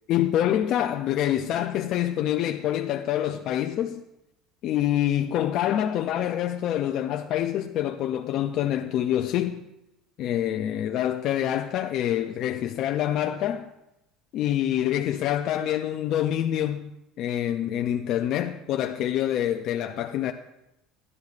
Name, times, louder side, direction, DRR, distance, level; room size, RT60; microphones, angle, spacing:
voice 1, 0.1-4.0 4.6-9.6 10.2-13.7 14.3-16.9 17.2-20.3, left 11 dB, 45° left, 0.4 m, -26 dB
13.0 x 10.5 x 2.4 m
cardioid pair, 170°, 0 cm